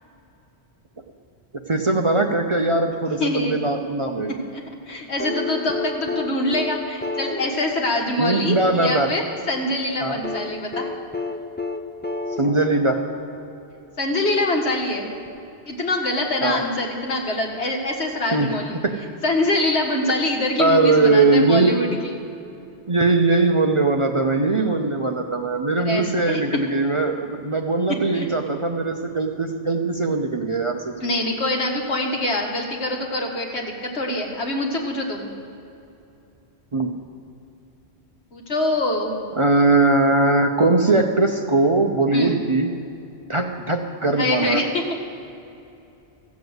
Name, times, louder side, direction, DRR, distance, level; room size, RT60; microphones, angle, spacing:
voice 1, 1.7-4.3 8.2-9.1 10.0-10.2 12.4-13.0 16.4-16.6 18.3-18.5 18.8-18.9 20.6-21.8 22.9-31.1 36.7-36.9 39.4-42.7 43.3-44.6, right 3 dB, 35° right, 3 dB, 0.6 m, -20 dB
voice 2, 3.1-3.6 4.5-9.2 9.5-10.9 14.0-15.1 15.7-18.8 19.2-22.2 25.8-26.4 28.1-28.4 31.0-35.3 38.3-39.2 42.1-42.4 44.2-45.0, left 1 dB, 75° left, 0 dB, 1.9 m, -24 dB
sound 1, 5.2-9.3 10.2-13.8 15.3-15.4, left 3 dB, 15° left, 0.4 m, -31 dB
14.5 x 7.2 x 7.9 m, 2.7 s
omnidirectional pair, 1.1 m